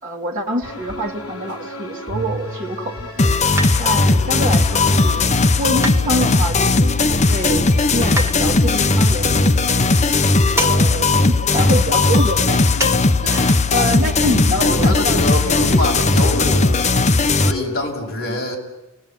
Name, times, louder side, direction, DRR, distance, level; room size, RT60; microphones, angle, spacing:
voice 1, 0.0-3.3 3.8-5.2 5.6-9.9 10.5-16.0 18.3-18.4, equal, 40° right, -3 dB, 2.5 m, -26 dB
sound 1, 0.6-17.8, left 1 dB, 75° left, 4.5 m, -33 dB
sound 2, 3.2-17.5, left 3 dB, 30° left, 0.9 m, -17 dB
sound 3, 3.6-4.1 5.8-6.5 8.2-8.4 10.6-10.8 11.1-11.2 12.8-13.0 13.3-13.4, right 2 dB, 15° right, 1.6 m, -26 dB
voice 2, 14.2-16.8 17.4-18.6, left 1 dB, 45° left, 0 dB, 6.8 m, -25 dB
30.0 x 19.0 x 9.0 m, 1.0 s
head